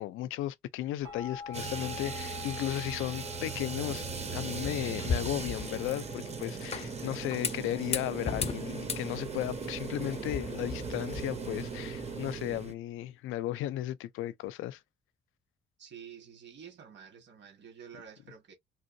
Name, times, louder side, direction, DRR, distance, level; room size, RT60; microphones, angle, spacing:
voice 1, 0.0-4.0 4.3-14.8, left 14 dB, 85° left, 0.5 m, -35 dB
sound 1, 1.0-12.5, left 4 dB, 80° right, 1.0 m, -48 dB
sound 2, 1.5-12.7, right 6 dB, 35° right, 0.7 m, -39 dB
sound 3, 3.1-12.3, left 5 dB, 30° left, 0.5 m, -39 dB
voice 2, 15.8-18.5, right 7 dB, 65° right, 1.6 m, -49 dB
3.4 x 2.6 x 2.6 m
cardioid pair, 90°, 20 cm